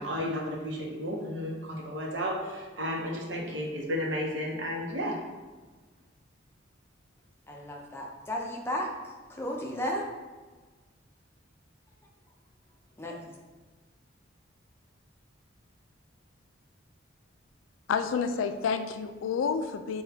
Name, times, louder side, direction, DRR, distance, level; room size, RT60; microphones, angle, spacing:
voice 1, 0.0-5.2, equal, 65° right, -1 dB, 0.8 m, -33 dB
voice 2, 7.5-8.9 9.3-10.0 13.0-13.3, equal, 10° left, -1 dB, 0.5 m, -34 dB
voice 3, 17.9-20.0, left 6 dB, 80° left, 9 dB, 0.3 m, -29 dB
5.9 x 2.2 x 2.8 m, 1.3 s
head